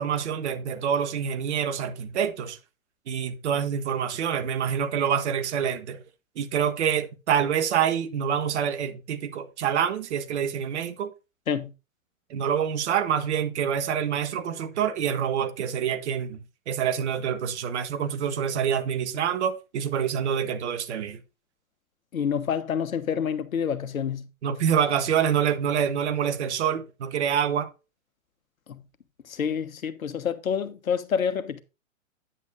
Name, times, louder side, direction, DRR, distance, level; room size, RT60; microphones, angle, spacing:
voice 1, 0.0-2.6 3.1-6.0 6.3-11.1 12.3-21.2 24.4-27.7, right 8 dB, 55° right, 1.5 m, -26 dB
voice 2, 22.1-24.3 28.7-28.8 29.3-31.6, left 7 dB, 75° left, 1.3 m, -28 dB
9.8 x 8.3 x 2.6 m
hypercardioid pair, 125°, 41 cm